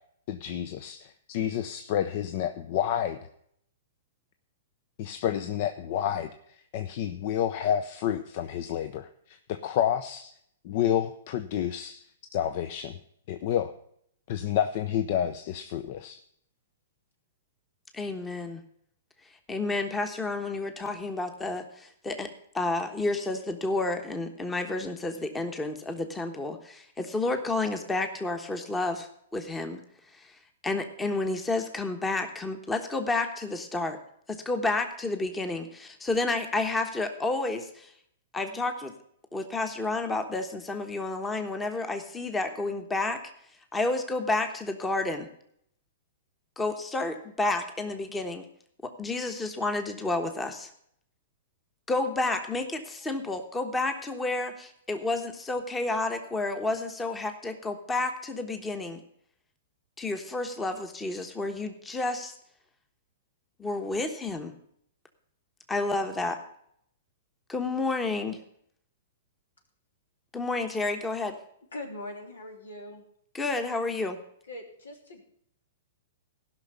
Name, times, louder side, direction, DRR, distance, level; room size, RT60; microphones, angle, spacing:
voice 1, 0.3-3.2 5.0-10.3 10.6-12.0 12.3-13.0 13.3-13.7 14.3-16.2, left 10 dB, 50° left, 10 dB, 0.7 m, -29 dB
voice 2, 17.9-18.6 19.5-29.8 30.1-30.4 30.6-34.0 34.3-37.9 38.3-38.9 39.3-43.2 43.7-45.3 46.6-48.5 48.8-50.7 51.9-59.0 60.0-62.3 63.6-64.5 65.7-66.4 67.5-68.4 70.3-71.4 73.3-74.2, left 2 dB, 10° left, 7 dB, 1.2 m, -30 dB
voice 3, 71.7-73.0 74.5-75.2, left 1 dB, 85° left, 3 dB, 3.0 m, -41 dB
15.5 x 6.0 x 6.6 m, 0.68 s
hypercardioid pair, 125°, 0 cm